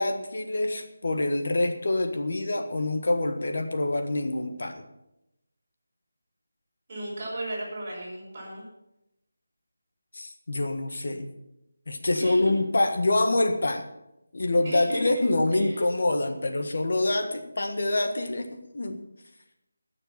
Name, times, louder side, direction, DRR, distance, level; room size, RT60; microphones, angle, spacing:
voice 1, 0.0-4.8 10.1-11.3 11.9-13.9 14.3-19.0, left 2 dB, 50° left, 6 dB, 1.5 m, -26 dB
voice 2, 6.9-8.6 12.1-12.6 14.6-15.2 15.5-15.8, right 1 dB, 20° right, -7 dB, 5.0 m, -35 dB
19.0 x 6.9 x 6.0 m, 0.88 s
figure-of-eight pair, 180°, 0 cm